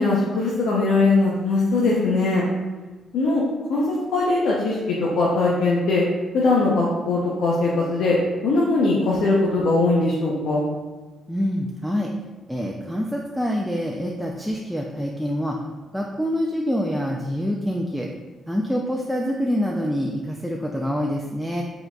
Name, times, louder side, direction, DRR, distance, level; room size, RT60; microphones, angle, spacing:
voice 1, 0.0-2.4 3.1-3.4 3.7-6.0 6.3-8.2 8.4-10.7, left 3 dB, 80° left, -5 dB, 0.6 m, -20 dB
voice 2, 11.3-12.1 12.5-15.6 15.9-18.1 18.5-21.6, equal, ahead, -1 dB, 0.4 m, -26 dB
4.5 x 3.8 x 2.3 m, 1.2 s
cardioid pair, 90°, 0 cm